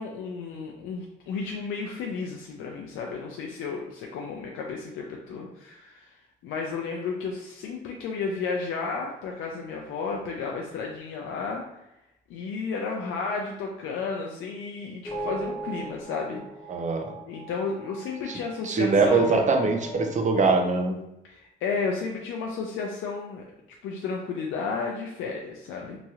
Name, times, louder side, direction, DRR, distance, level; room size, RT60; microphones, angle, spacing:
voice 1, 0.0-6.1 6.4-11.6 12.3-16.4 17.3-19.4 21.2-23.4 23.8-26.0, left 4 dB, 85° left, 0 dB, 0.4 m, -32 dB
sound 1, 15.0-18.7 19.0-20.7, equal, 20° left, 0.7 m, -38 dB
voice 2, 16.7-17.1 18.3-18.4 18.6-21.0, right 4 dB, 40° right, 5 dB, 0.5 m, -23 dB
2.9 x 2.7 x 2.4 m, 0.89 s
cardioid pair, 90°, 20 cm